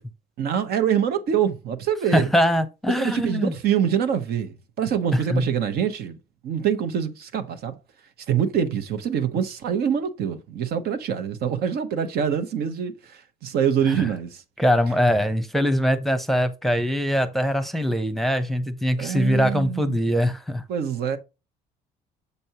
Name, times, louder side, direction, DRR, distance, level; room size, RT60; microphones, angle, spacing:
voice 1, 0.4-2.3 3.0-6.2 6.4-7.8 8.3-14.4 19.0-20.0 20.7-21.2, right 8 dB, 70° right, 1.1 m, -25 dB
voice 2, 2.1-3.5 5.1-5.5 13.9-14.1 14.6-20.6, equal, ahead, 0.8 m, -22 dB
6.9 x 5.2 x 2.9 m
cardioid pair, 110°, 17 cm